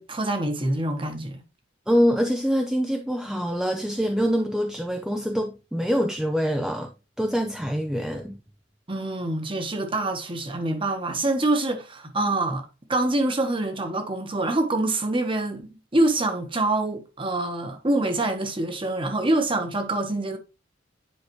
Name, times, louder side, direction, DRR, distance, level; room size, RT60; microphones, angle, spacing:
voice 1, 0.0-1.4 8.9-20.4, right 2 dB, 25° right, 1.2 m, -25 dB
voice 2, 1.9-8.4, equal, 5° right, 0.5 m, -25 dB
9.5 x 4.9 x 3.1 m
head